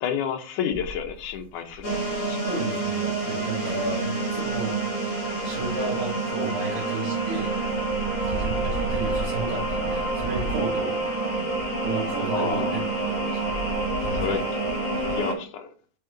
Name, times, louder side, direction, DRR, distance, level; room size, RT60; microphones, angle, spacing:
voice 1, 0.0-2.0 2.3-2.4 12.3-12.7 14.1-14.4 15.2-15.7, left 8 dB, 70° left, 5 dB, 2.3 m, -30 dB
sound 1, 0.7-6.7 7.2-15.1, right 1 dB, 60° right, 2.7 m, -37 dB
sound 2, 1.8-15.3, right 3 dB, 40° left, 3.8 m, -28 dB
voice 2, 2.4-4.8 5.4-7.6 8.2-11.0 11.8-13.7 14.0-14.4, right 3 dB, 75° right, -7 dB, 4.3 m, -33 dB
8.8 x 4.9 x 3.9 m, 0.43 s
omnidirectional pair, 4.0 m